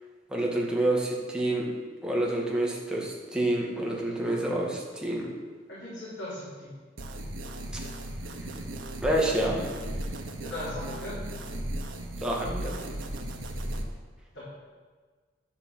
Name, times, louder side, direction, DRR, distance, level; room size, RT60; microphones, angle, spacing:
voice 1, 0.3-1.7 2.0-5.3 7.7-7.8 9.0-9.8 12.2-12.8, right 1 dB, 5° right, -3 dB, 2.1 m, -28 dB
voice 2, 5.7-6.7 10.4-11.2 14.3-14.4, left 1 dB, 65° left, -11 dB, 4.5 m, -38 dB
sound 1, 7.0-13.8, right 1 dB, 90° right, 1.4 m, -36 dB
10.5 x 8.0 x 7.4 m, 1.5 s
head